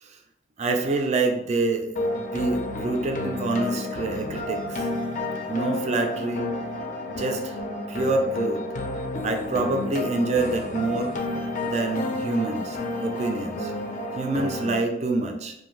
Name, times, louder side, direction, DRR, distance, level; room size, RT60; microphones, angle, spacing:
voice 1, 0.6-4.9 5.5-6.5 7.2-7.6 7.9-8.6 9.2-11.1 11.6-13.7 14.2-15.5, right 2 dB, 40° right, 4 dB, 0.3 m, -26 dB
sound 1, 2.0-14.8, left 2 dB, 45° left, 0.4 m, -31 dB
2.5 x 2.2 x 3.1 m, 0.78 s
head